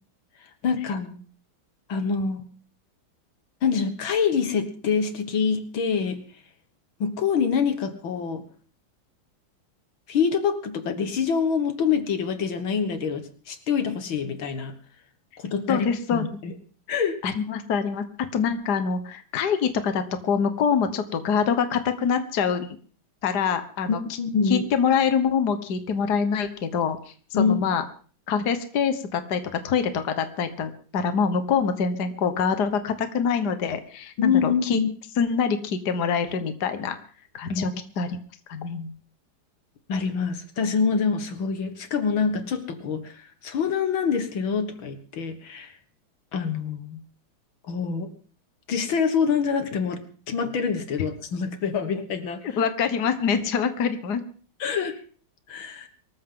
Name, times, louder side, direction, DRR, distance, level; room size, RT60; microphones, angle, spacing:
voice 1, 0.4-1.2 1.9-2.4 3.6-6.2 7.0-8.5 10.1-14.8 15.4-16.5 16.9-17.2 23.9-24.7 27.3-27.6 34.2-34.9 37.5-37.7 39.9-45.8 46.3-47.0 47.7-48.1 48.7-52.6 53.3-53.4 54.6-55.0 55.5-55.9, left 6 dB, 75° left, 9 dB, 2.3 m, -26 dB
voice 2, 15.7-16.2 17.2-18.0 18.3-22.8 23.2-24.0 24.5-27.0 27.3-27.8 28.3-34.8 35.2-37.0 37.3-37.7 38.0-38.2 38.5-38.9 52.4-54.2, left 6 dB, 55° left, 9 dB, 1.8 m, -25 dB
24.0 x 14.0 x 3.9 m, 0.41 s
omnidirectional pair, 2.2 m